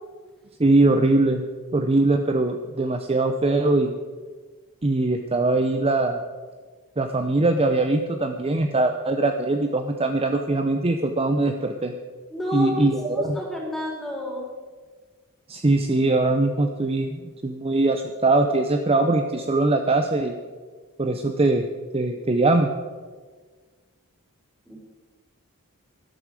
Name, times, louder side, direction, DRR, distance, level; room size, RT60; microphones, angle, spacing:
voice 1, 0.6-1.4 1.7-4.0 4.8-6.2 7.0-11.9 12.5-13.4 15.5-20.3 21.0-21.7 21.9-22.7, right 2 dB, 25° right, 6 dB, 0.7 m, -21 dB
voice 2, 12.3-14.5 24.7-24.8, left 1 dB, ahead, -1 dB, 3.7 m, -30 dB
12.0 x 12.0 x 7.6 m, 1.4 s
head